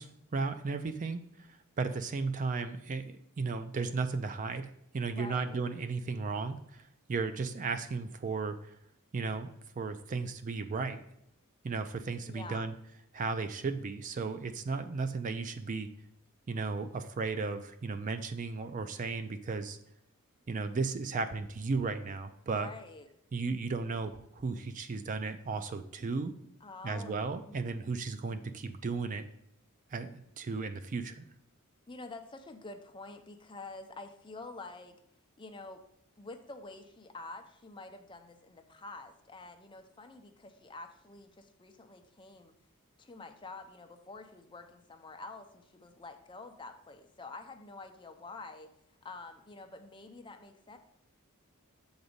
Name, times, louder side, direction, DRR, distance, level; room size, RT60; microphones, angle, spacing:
voice 1, 0.0-8.8 9.1-9.5 9.8-11.0 11.6-12.7 13.1-15.9 16.5-19.8 20.5-22.7 23.3-26.3 26.8-29.3 29.9-31.3, right 4 dB, 35° right, 10 dB, 0.4 m, -35 dB
voice 2, 5.1-5.6 12.3-12.7 22.5-23.1 26.6-27.8 31.9-35.0 35.4-35.8 36.2-42.5 43.0-48.7 49.0-50.8, left 3 dB, 20° left, 5 dB, 0.6 m, -47 dB
7.0 x 4.0 x 5.0 m, 0.77 s
head